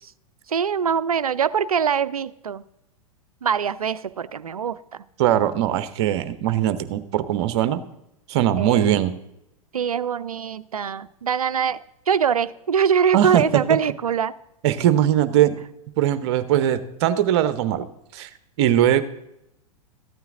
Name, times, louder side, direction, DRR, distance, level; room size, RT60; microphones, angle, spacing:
voice 1, 0.5-2.6 3.4-5.0 8.6-8.9 9.7-11.8 12.1-14.3, right 7 dB, 80° right, 15 dB, 0.5 m, -23 dB
voice 2, 5.2-7.8 8.3-9.1 13.1-13.6 14.6-15.6 16.0-17.9 18.1-18.3 18.6-19.0, right 11 dB, 50° right, 13 dB, 0.9 m, -20 dB
14.0 x 9.1 x 3.6 m, 0.85 s
figure-of-eight pair, 95°, 19 cm